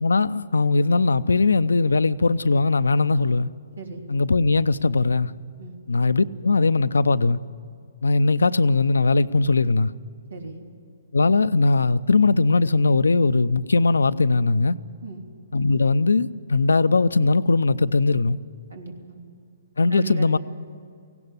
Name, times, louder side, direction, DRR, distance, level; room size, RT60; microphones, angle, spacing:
voice 1, 0.0-3.5 4.1-5.3 5.9-7.4 8.0-9.9 11.1-14.8 15.5-18.4 19.8-20.4, left 3 dB, 85° left, 0.6 m, -20 dB
voice 2, 10.3-10.6 15.0-15.2 18.7-19.2 19.9-20.4, right 4 dB, 85° right, 3.1 m, -36 dB
18.0 x 16.5 x 9.8 m
hypercardioid pair, 135°, 0 cm